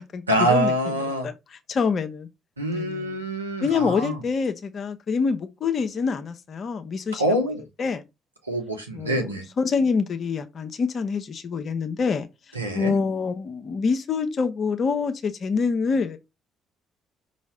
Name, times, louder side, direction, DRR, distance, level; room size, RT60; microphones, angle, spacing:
voice 1, 0.3-1.3 2.6-4.2 7.1-7.6 8.5-9.5 12.5-12.9, right 1 dB, 85° right, 1.1 m, -25 dB
voice 2, 1.7-2.3 2.7-3.2 3.6-7.2 7.8-8.0 8.9-9.3 9.6-12.3 12.7-16.2, left 5 dB, 40° left, 0.9 m, -26 dB
5.7 x 3.1 x 5.6 m
figure-of-eight pair, 45°, 0 cm